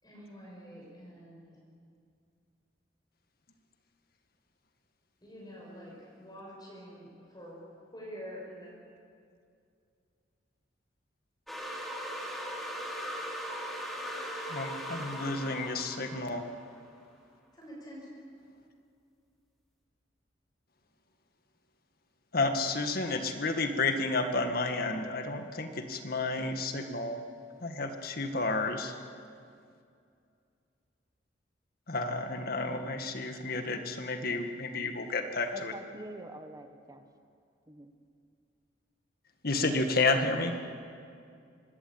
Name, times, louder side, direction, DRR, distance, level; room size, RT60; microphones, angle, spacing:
voice 1, 0.0-1.6 5.2-7.7 7.9-8.7 17.5-18.1, equal, 25° left, -4 dB, 6.0 m, -47 dB
sound 1, 11.5-16.8, equal, ahead, 3.2 m, -39 dB
voice 2, 14.5-16.4 22.3-27.2 27.6-28.9 31.9-35.7 39.4-40.5, left 3 dB, 55° left, 6 dB, 1.9 m, -31 dB
voice 3, 35.5-37.0 37.7-37.9, right 1 dB, 20° right, 7 dB, 1.4 m, -45 dB
24.5 x 20.0 x 8.8 m, 2.4 s
head